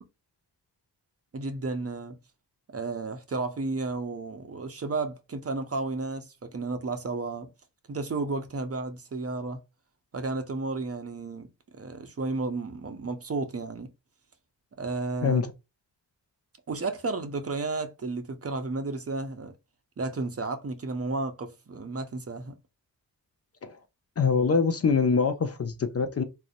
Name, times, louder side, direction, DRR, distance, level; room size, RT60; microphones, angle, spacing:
voice 1, 1.3-2.2 2.7-7.5 7.9-9.6 10.1-11.5 11.8-13.9 14.8-15.4 16.7-19.5 20.0-22.6, right 3 dB, 35° right, 0.6 m, -32 dB
voice 2, 24.2-26.2, left 5 dB, 35° left, 0.5 m, -24 dB
2.7 x 2.0 x 2.5 m
cardioid pair, 50°, 42 cm